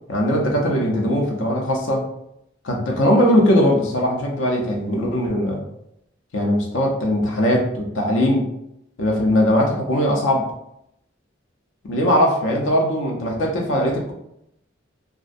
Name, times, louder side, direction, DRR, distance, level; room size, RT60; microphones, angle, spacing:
voice 1, 0.1-2.1 2.6-5.6 6.3-8.5 9.0-10.5 11.8-14.1, equal, 75° left, 0 dB, 0.6 m, -20 dB
2.5 x 2.1 x 2.5 m, 0.79 s
head